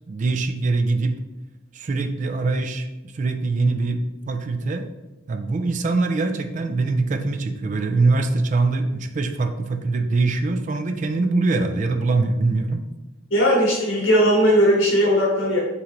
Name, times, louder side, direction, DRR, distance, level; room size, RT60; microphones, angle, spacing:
voice 1, 0.1-1.1 1.7-2.9 3.1-4.8 5.3-12.8, right 3 dB, 40° right, 7 dB, 0.3 m, -23 dB
voice 2, 13.3-15.6, equal, 60° left, -3 dB, 0.9 m, -18 dB
5.8 x 3.2 x 2.5 m, 1.0 s
head